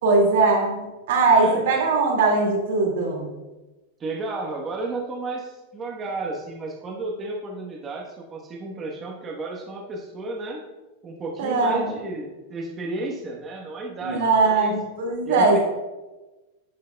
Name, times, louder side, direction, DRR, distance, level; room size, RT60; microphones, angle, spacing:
voice 1, 0.0-3.3 11.4-11.9 14.0-15.6, right 3 dB, 80° right, 0 dB, 2.1 m, -20 dB
voice 2, 4.0-10.6 11.0-14.7 15.2-15.6, right 2 dB, 25° right, -1 dB, 1.1 m, -32 dB
11.0 x 6.4 x 2.3 m, 1.1 s
supercardioid pair, 130°, 0 cm